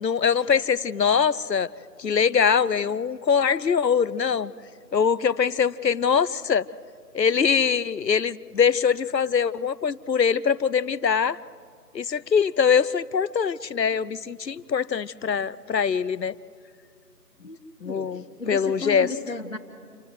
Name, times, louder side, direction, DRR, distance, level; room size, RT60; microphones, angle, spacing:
voice 1, 0.0-1.7 2.0-4.5 4.9-6.6 7.1-11.4 11.9-16.3 17.8-19.1, left 6 dB, 90° left, 19 dB, 0.8 m, -23 dB
voice 2, 17.8-19.6, left 3 dB, 50° left, 1 dB, 1.4 m, -34 dB
28.5 x 14.0 x 8.0 m, 2.2 s
figure-of-eight pair, 175°, 49 cm